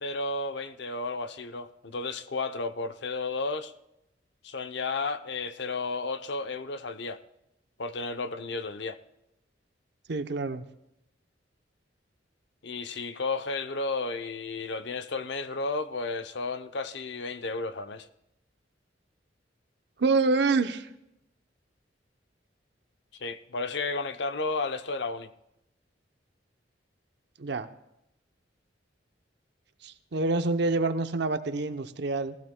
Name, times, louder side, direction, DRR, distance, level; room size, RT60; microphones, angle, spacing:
voice 1, 0.0-3.7 4.4-7.2 7.8-9.0 12.6-18.1 23.2-25.3, left 3 dB, 65° left, 0.7 m, -33 dB
voice 2, 10.1-10.7 20.0-20.9 27.4-27.7 29.8-32.4, right 3 dB, 65° right, 0.7 m, -27 dB
18.0 x 15.5 x 2.2 m
head